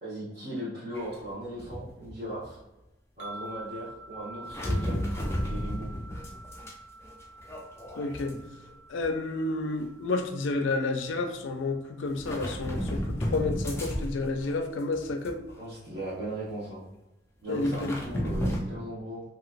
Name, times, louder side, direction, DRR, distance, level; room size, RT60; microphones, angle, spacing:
voice 1, 0.0-2.6 3.2-5.1 5.4-5.9 15.6-16.8 17.4-19.2, right 1 dB, 45° right, -12 dB, 1.3 m, -38 dB
dog on stairs, 0.9-1.2 1.6-2.5 4.5-6.7 7.0-8.7 9.0-9.3 10.4-10.5 12.1-14.5 14.9-15.6 16.1-16.2 17.5-18.6, equal, 15° left, 0.4 m, -33 dB
sound 1, 3.2-12.5, right 2 dB, 65° right, 0.4 m, -48 dB
voice 2, 8.0-8.4 8.9-15.4 17.5-18.0, left 3 dB, 90° left, 6 dB, 0.4 m, -30 dB
3.0 x 2.8 x 2.5 m, 0.96 s
head